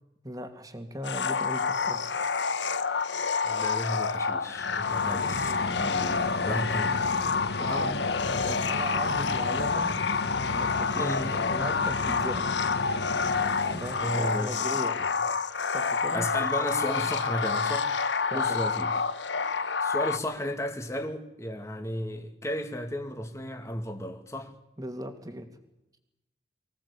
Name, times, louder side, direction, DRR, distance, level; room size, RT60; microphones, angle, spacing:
voice 1, 0.2-2.0 5.9-6.1 7.8-7.9 8.4-9.9 10.5-12.5 13.7-15.0 15.7-16.3 18.3-18.6 24.8-25.5, equal, 20° right, 2.5 m, -37 dB
sound 1, 1.0-20.2, left 5 dB, 80° left, 1.1 m, -28 dB
voice 2, 3.4-7.1 7.6-7.9 11.0-11.4 14.0-14.6 16.1-17.9 18.3-18.9 19.8-24.6, left 1 dB, 15° left, 2.2 m, -34 dB
sound 2, 4.5-14.5, left 2 dB, 65° left, 1.4 m, -35 dB
24.5 x 17.0 x 8.5 m
head